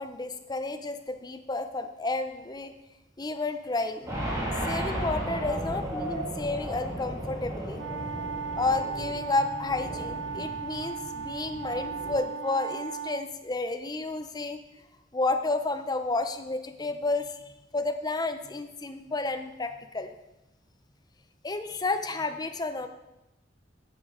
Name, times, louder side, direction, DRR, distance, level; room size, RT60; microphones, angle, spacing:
voice 1, 0.0-2.7 3.2-4.1 4.6-7.8 8.6-14.6 15.1-20.1 21.4-22.9, left 3 dB, 20° left, 8 dB, 0.6 m, -31 dB
sound 1, 4.1-12.2, right 1 dB, 20° right, 2.6 m, -35 dB
sound 2, 7.7-13.3, right 5 dB, 80° right, 0.6 m, -36 dB
9.3 x 6.3 x 5.0 m, 0.95 s
head